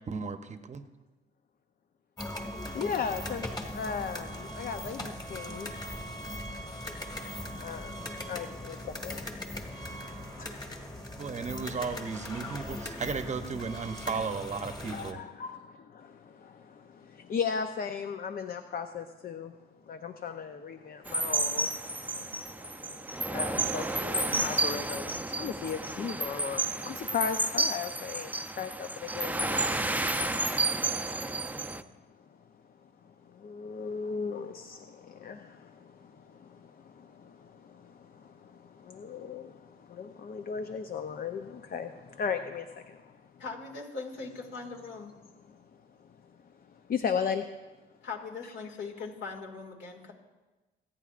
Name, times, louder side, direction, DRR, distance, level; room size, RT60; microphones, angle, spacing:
voice 1, 0.1-0.8 11.2-15.2, right 5 dB, 35° right, 8 dB, 0.8 m, -35 dB
sound 1, 2.2-15.1, left 1 dB, 20° left, 1.8 m, -39 dB
voice 2, 2.7-5.7 6.6-6.8 7.5-10.8 14.9-19.5 19.8-43.4 45.4-47.5 48.4-48.5, left 6 dB, 45° left, 7 dB, 0.7 m, -38 dB
sound 2, 21.1-31.8, right 2 dB, 10° right, 0.6 m, -31 dB
voice 3, 43.4-45.1 48.0-50.1, left 4 dB, 65° left, 1 dB, 2.2 m, -40 dB
26.0 x 9.2 x 2.5 m, 1.2 s
cardioid pair, 90°, 20 cm